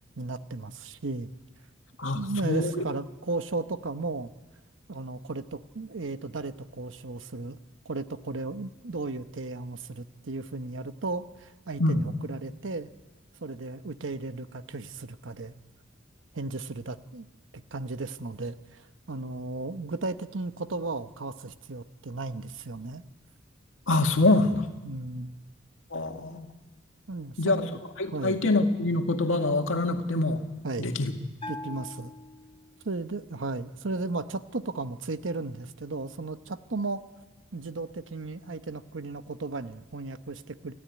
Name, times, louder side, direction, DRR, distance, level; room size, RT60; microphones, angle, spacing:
voice 1, 0.2-1.3 2.1-4.3 4.9-7.6 7.8-12.9 13.4-15.5 16.3-17.3 17.5-23.0 24.8-25.4 27.1-27.8 28.1-28.4 30.6-30.9 31.5-32.1 32.8-37.0 37.5-40.7, right 3 dB, 75° right, 11 dB, 0.9 m, -35 dB
voice 2, 2.0-2.8 11.8-12.0 23.9-24.7 25.9-26.5 27.4-27.6 28.0-30.4 30.8-31.1, left 2 dB, 80° left, 4 dB, 2.1 m, -25 dB
Bell, 31.4-33.0, left 2 dB, 30° left, 1.2 m, -42 dB
29.5 x 12.5 x 9.6 m, 1.2 s
head